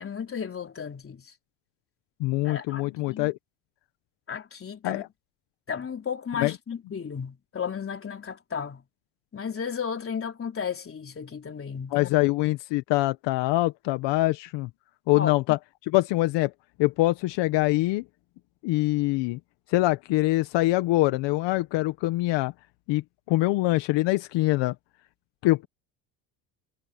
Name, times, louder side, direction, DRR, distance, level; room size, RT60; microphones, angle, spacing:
voice 1, 0.0-1.3 2.4-3.3 4.3-5.1 5.7-8.8 9.3-12.2 15.1-15.6, left 7 dB, 30° left, 3.7 m, -34 dB
voice 2, 2.2-3.4 4.8-5.1 6.4-6.5 11.9-14.7 15.1-15.6 15.9-16.5 16.8-18.0 18.6-19.4 19.7-22.5 22.9-24.7 25.4-25.7, left 18 dB, 70° left, 1.5 m, -24 dB
supercardioid pair, 95°, 44 cm